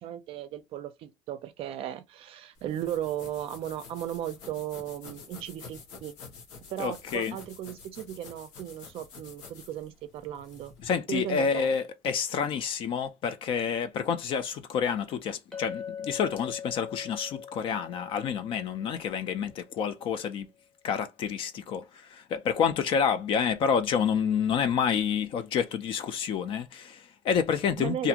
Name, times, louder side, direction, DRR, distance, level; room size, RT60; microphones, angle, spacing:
voice 1, 0.0-6.1 6.7-10.7 11.1-11.7 27.8-28.1, right 11 dB, 50° right, 0.4 m, -36 dB
sound 1, 2.6-10.9, left 5 dB, 85° left, 1.0 m, -49 dB
voice 2, 6.8-7.3 10.8-20.5 20.8-28.1, left 7 dB, 45° left, 0.4 m, -28 dB
Chink clink, 15.5-20.0, left 7 dB, 5° left, 0.6 m, -42 dB
2.5 x 2.4 x 2.8 m
cardioid pair, 165°, 12 cm